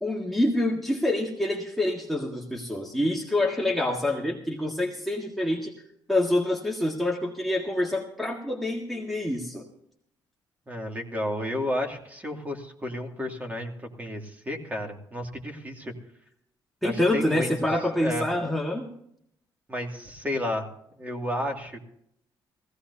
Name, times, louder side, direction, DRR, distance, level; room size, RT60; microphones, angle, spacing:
voice 1, 0.0-5.7 6.1-9.6 16.8-18.9, left 1 dB, ahead, -2 dB, 1.7 m, -26 dB
voice 2, 10.7-13.7 14.0-15.9 16.8-17.5 18.0-18.3 19.7-20.7 21.0-21.9, left 1 dB, 20° right, 2 dB, 2.5 m, -32 dB
17.5 x 16.0 x 2.8 m, 0.71 s
cardioid pair, 115°, 9 cm